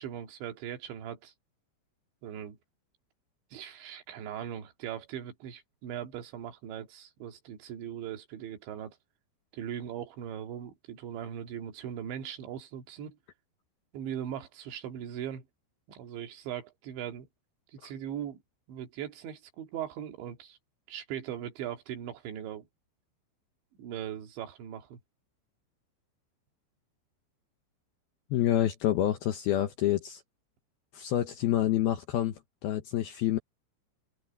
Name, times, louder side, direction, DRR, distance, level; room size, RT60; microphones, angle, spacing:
voice 1, 0.0-1.3 2.2-2.6 3.5-9.0 9.5-13.2 13.9-15.5 15.9-17.3 17.7-18.4 18.7-20.6 20.9-22.7 23.8-25.0, right 9 dB, 70° right, 4.2 m, -39 dB
voice 2, 28.3-30.2 30.9-33.4, left 12 dB, 75° left, 2.4 m, -28 dB
omnidirectional pair, 5.5 m